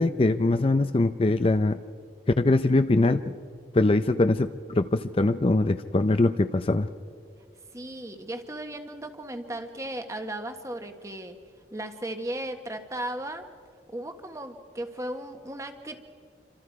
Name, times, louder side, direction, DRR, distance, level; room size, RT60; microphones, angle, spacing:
voice 1, 0.0-1.8 2.4-3.3 3.7-6.9, left 2 dB, 30° left, 10 dB, 0.5 m, -22 dB
voice 2, 7.7-11.4 11.7-13.5 13.9-16.0, right 1 dB, 20° right, 6 dB, 1.4 m, -36 dB
28.0 x 26.0 x 4.8 m, 2.1 s
head